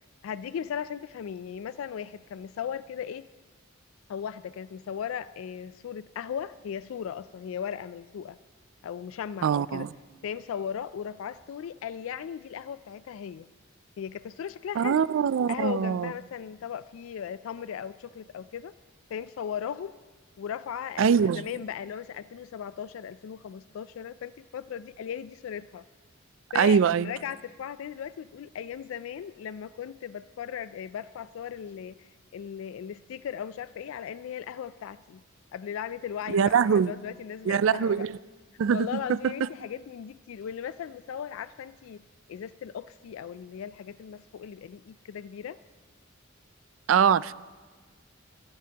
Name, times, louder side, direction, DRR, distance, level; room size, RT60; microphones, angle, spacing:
voice 1, 0.2-3.3 4.1-8.4 8.8-9.9 10.2-13.5 14.0-15.0 15.5-18.7 19.1-20.0 20.4-25.8 26.5-35.2 35.5-38.1 38.7-42.0 42.3-45.6, left 8 dB, 75° left, 0.3 m, -37 dB
voice 2, 9.4-9.9 14.8-16.1 21.0-21.4 26.5-27.1 36.3-36.9 37.5-38.2 38.6-39.2 46.9-47.3, right 7 dB, 70° right, 0.3 m, -23 dB
24.0 x 14.0 x 2.9 m
head